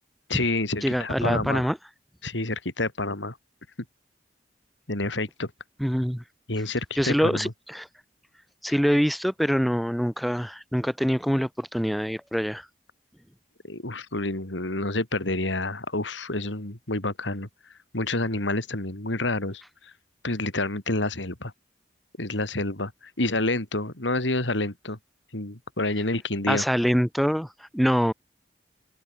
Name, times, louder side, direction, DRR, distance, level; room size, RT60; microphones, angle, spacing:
voice 1, 0.3-1.7 2.2-3.4 4.9-5.5 6.5-7.5 13.6-17.5 17.9-19.6 20.2-21.5 22.2-22.9 23.2-25.0 25.3-26.6, left 2 dB, 90° left, 3.6 m, -28 dB
voice 2, 0.8-1.8 5.8-6.2 7.0-7.9 8.6-12.6 26.5-27.5 27.7-28.1, equal, ahead, 2.3 m, -24 dB
head